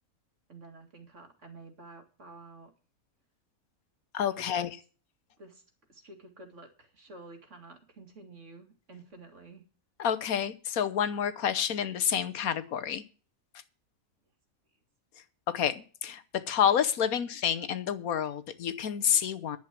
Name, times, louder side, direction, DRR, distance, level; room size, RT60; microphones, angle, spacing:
voice 1, 0.5-2.7 4.4-4.7 5.4-5.6 5.9-9.6, right 3 dB, 55° right, 4 dB, 2.6 m, -50 dB
voice 2, 4.1-4.7 10.0-13.0 15.5-19.6, left 9 dB, 80° left, 12 dB, 1.4 m, -29 dB
10.5 x 7.3 x 7.4 m, 0.38 s
omnidirectional pair, 1.5 m